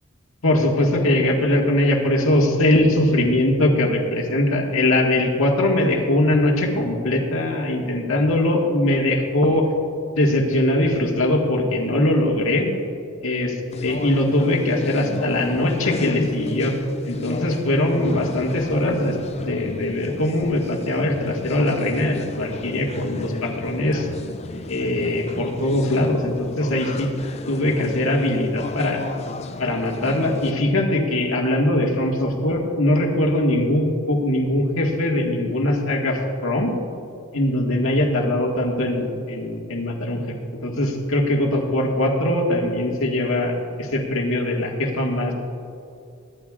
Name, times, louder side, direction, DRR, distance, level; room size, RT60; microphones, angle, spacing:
voice 1, 0.4-9.7 10.1-12.7 13.2-16.7 17.0-24.1 24.7-27.1 27.5-29.0 29.6-36.7 37.3-40.2 40.6-45.3, left 1 dB, 75° left, 0 dB, 1.8 m, -21 dB
sound 1, 13.7-30.5, left 2 dB, 30° left, 0.4 m, -33 dB
24.5 x 10.5 x 2.5 m, 2.5 s
head